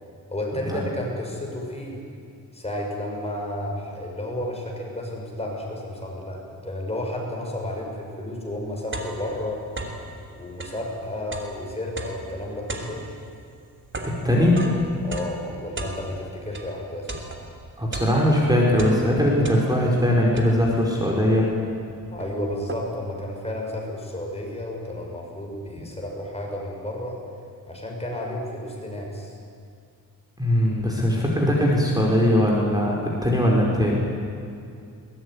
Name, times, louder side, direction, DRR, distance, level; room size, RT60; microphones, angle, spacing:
voice 1, 0.3-2.0 2.5-9.6 10.3-13.0 15.0-17.1 22.1-27.2 27.7-29.4, left 1 dB, 15° left, 0 dB, 6.2 m, -32 dB
sound 1, 8.9-10.1 10.5-16.7 17.1-18.4 18.7-20.0 20.4-20.9 21.5-21.6 21.9-23.1, right 2 dB, 35° right, 3.2 m, -36 dB
voice 2, 14.0-14.6 17.8-21.5 30.4-32.9 33.2-34.0, equal, 10° right, -2 dB, 5.0 m, -20 dB
22.0 x 20.5 x 9.8 m, 2.4 s
cardioid pair, 110°, 36 cm